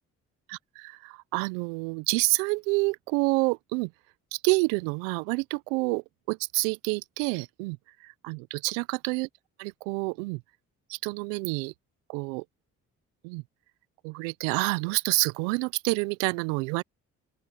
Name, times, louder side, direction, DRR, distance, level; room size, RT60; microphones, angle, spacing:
voice 1, 0.5-3.9 4.3-9.3 9.6-10.4 10.9-11.7 12.1-12.4 13.2-13.4 14.0-16.8, right 29 dB, 85° right, 0.6 m, -28 dB
open air
hypercardioid pair, 45°, 38 cm